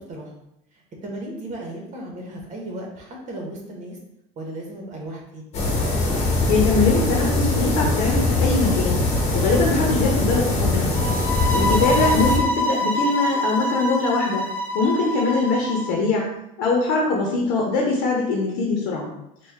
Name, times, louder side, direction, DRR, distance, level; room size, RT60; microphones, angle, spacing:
voice 1, 0.7-4.0 4.4-5.4, right 1 dB, 40° right, 0 dB, 1.3 m, -35 dB
sound 1, 5.5-12.4, left 2 dB, 35° left, 1.1 m, -22 dB
voice 2, 6.5-9.0 9.3-10.9 11.5-14.4 14.7-16.3 16.6-19.1, left 3 dB, 75° left, -1 dB, 0.9 m, -22 dB
sound 2, 10.9-15.9, left 1 dB, 10° left, 0.6 m, -25 dB
4.3 x 2.4 x 3.6 m, 0.81 s
supercardioid pair, 125°, 19 cm